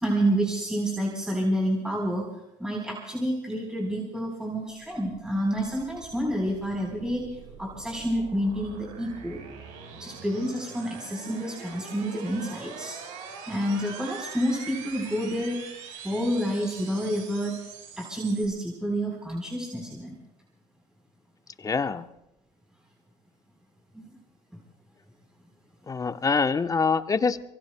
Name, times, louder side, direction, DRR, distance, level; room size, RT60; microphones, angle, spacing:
voice 1, 0.0-9.4 10.0-13.0 13.5-15.6 16.0-17.6 18.0-20.2 23.9-24.1, equal, 5° right, -2 dB, 4.0 m, -29 dB
sound 1, 4.8-18.5, right 6 dB, 75° right, 4.4 m, -43 dB
voice 2, 21.6-22.1 25.9-27.4, left 5 dB, 25° left, 10 dB, 0.9 m, -25 dB
26.5 x 23.5 x 2.2 m, 0.87 s
supercardioid pair, 80°, 14 cm